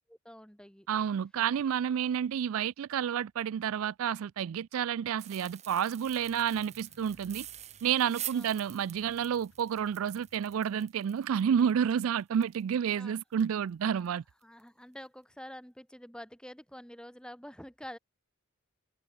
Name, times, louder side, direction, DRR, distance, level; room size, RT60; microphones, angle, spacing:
voice 1, 0.1-0.9 8.3-8.6 12.9-13.2 13.9-14.1 14.4-18.0, equal, 5° left, 3.8 m, -48 dB
voice 2, 0.9-7.5 7.8-14.2, right 8 dB, 75° right, 0.3 m, -30 dB
sound 1, 5.2-13.0 13.3-13.4 13.9-14.1 14.4-14.6, right 13 dB, 30° right, 1.0 m, -46 dB
sound 2, 6.0-10.6, left 1 dB, 65° left, 4.2 m, -63 dB
head